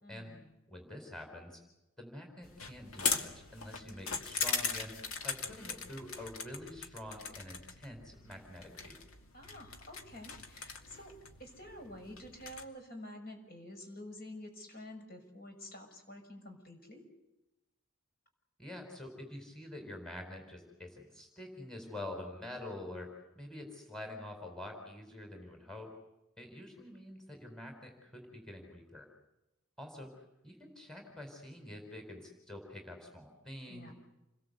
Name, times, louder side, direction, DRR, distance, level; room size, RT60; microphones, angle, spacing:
voice 1, 0.0-0.5 9.3-11.1 11.4-17.0 33.7-33.9, left 1 dB, 45° left, 3 dB, 6.6 m, -49 dB
voice 2, 0.7-1.6 2.0-5.0 5.2-9.0 18.6-25.9 26.4-29.1 29.8-30.1 30.4-33.9, left 1 dB, 5° left, 3 dB, 4.6 m, -47 dB
sound 1, 2.4-12.6, left 5 dB, 80° left, 2.6 m, -40 dB
29.0 x 22.0 x 8.2 m, 0.94 s
head